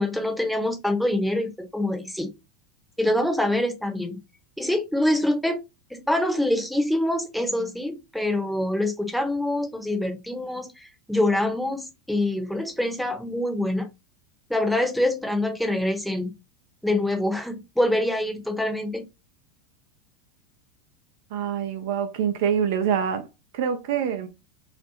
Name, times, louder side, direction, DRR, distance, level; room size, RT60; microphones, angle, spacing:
voice 1, 0.0-2.3 3.0-4.2 4.6-5.6 5.9-13.9 14.5-16.3 16.8-19.1, left 1 dB, ahead, 0.7 m, -25 dB
voice 2, 21.3-23.3 23.5-24.3, right 8 dB, 60° right, 0.5 m, -25 dB
2.4 x 2.1 x 2.9 m
figure-of-eight pair, 85°, 0 cm